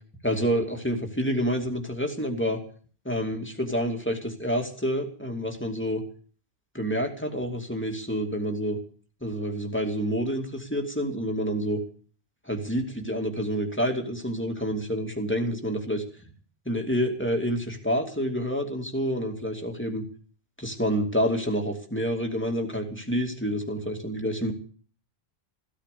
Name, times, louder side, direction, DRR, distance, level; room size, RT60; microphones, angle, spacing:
voice 1, 0.2-2.6 3.0-6.0 6.7-8.8 9.2-11.8 12.4-16.0 16.7-20.0 20.6-24.5, equal, 10° left, 3 dB, 2.6 m, -28 dB
16.0 x 13.5 x 6.8 m, 0.44 s
omnidirectional pair, 1.1 m